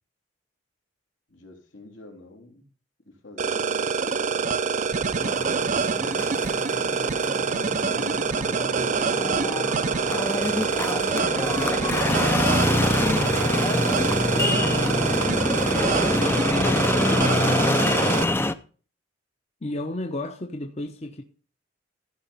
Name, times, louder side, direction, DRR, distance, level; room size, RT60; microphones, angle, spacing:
voice 1, 1.3-2.6 3.0-6.3 7.4-10.2, left 2 dB, 80° left, 3.3 m, -46 dB
sound 1, 3.4-18.2, right 5 dB, 40° right, 0.5 m, -25 dB
sound 2, 5.2-18.5, left 2 dB, 10° left, 0.5 m, -25 dB
voice 2, 19.6-21.2, left 1 dB, 35° left, 0.9 m, -32 dB
14.5 x 5.0 x 5.5 m
head